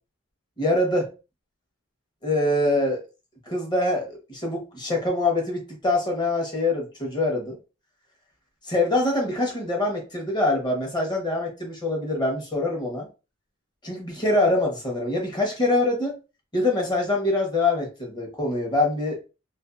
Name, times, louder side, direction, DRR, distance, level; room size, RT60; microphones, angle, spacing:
voice 1, 0.6-1.1 2.2-3.0 3.5-7.6 8.6-13.1 13.8-16.1 16.5-19.2, left 2 dB, 20° left, 0 dB, 0.9 m, -24 dB
2.5 x 2.4 x 2.4 m, 0.31 s
head